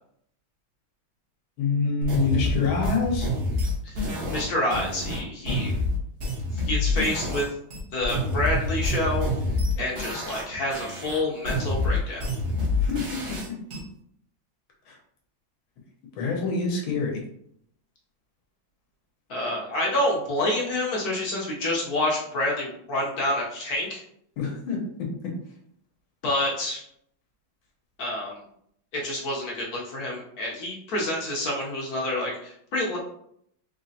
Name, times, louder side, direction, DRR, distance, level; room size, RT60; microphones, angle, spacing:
voice 1, 1.6-3.3 5.5-5.6 12.8-13.6 14.9-15.0 16.2-17.2 24.4-25.1, left 4 dB, 85° left, 0 dB, 1.7 m, -26 dB
sound 1, 2.0-7.5 7.7-10.5 10.7-13.8, left 2 dB, 45° right, 1.0 m, -27 dB
voice 2, 4.3-5.7 6.5-7.5 7.9-9.3 9.8-12.2 19.3-24.0 26.2-26.8 28.0-28.4 28.9-33.0, left 1 dB, 60° left, -3 dB, 1.1 m, -28 dB
4.1 x 2.9 x 2.7 m, 0.69 s
omnidirectional pair, 2.2 m